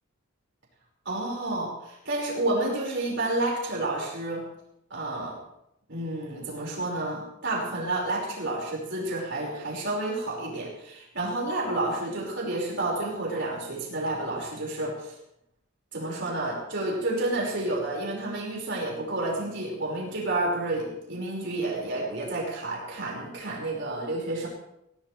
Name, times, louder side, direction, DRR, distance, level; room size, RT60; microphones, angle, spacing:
voice 1, 1.1-4.4 4.9-5.4 5.9-15.1 15.9-24.5, right 2 dB, 55° right, -3 dB, 5.6 m, -30 dB
24.0 x 17.0 x 3.4 m, 0.81 s
head